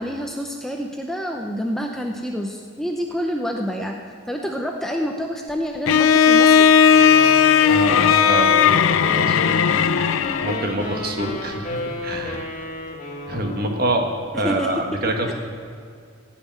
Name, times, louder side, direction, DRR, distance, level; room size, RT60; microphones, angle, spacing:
voice 1, 0.0-4.0 4.3-6.6 14.4-14.7 15.3-15.4, equal, ahead, 2 dB, 0.6 m, -27 dB
Bowed string instrument, 5.9-10.7, left 7 dB, 75° left, 0.4 m, -16 dB
sound 1, 6.9-14.1, left 2 dB, 35° left, 2.0 m, -31 dB
voice 2, 7.7-9.9 10.4-12.4 13.3-15.3, right 1 dB, 45° right, 3 dB, 1.4 m, -26 dB
15.0 x 5.9 x 9.1 m, 2.2 s
head